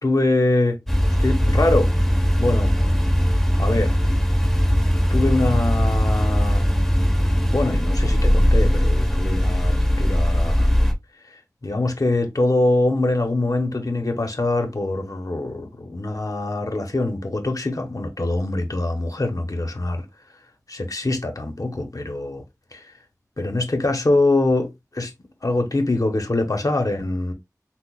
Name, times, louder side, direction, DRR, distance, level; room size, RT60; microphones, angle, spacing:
voice 1, 0.0-0.8 1.2-1.9 2.4-3.0 3.6-3.9 5.1-6.7 7.4-10.7 11.6-20.0 20.7-22.4 22.7-22.9 23.4-25.1 25.4-27.3, left 2 dB, 65° left, 0.7 m, -23 dB
sound 1, 0.9-10.9, equal, 5° left, 1.1 m, -19 dB
5.8 x 2.1 x 2.3 m
wide cardioid pair, 45°, 6 cm